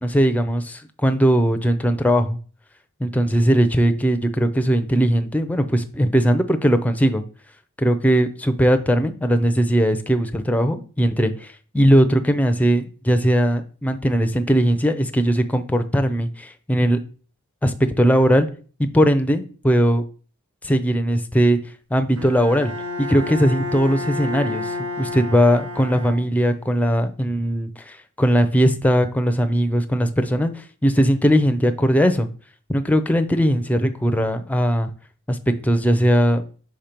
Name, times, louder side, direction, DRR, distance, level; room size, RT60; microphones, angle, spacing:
voice 1, 0.0-2.4 3.0-7.2 7.8-17.0 17.6-18.5 18.8-20.0 20.6-21.6 21.9-22.7 23.0-32.3 32.7-34.9 35.3-36.4, equal, 5° left, 7 dB, 0.5 m, -19 dB
Bowed string instrument, 22.2-26.7, left 3 dB, 75° right, 1.1 m, -30 dB
5.6 x 4.4 x 5.1 m, 0.40 s
head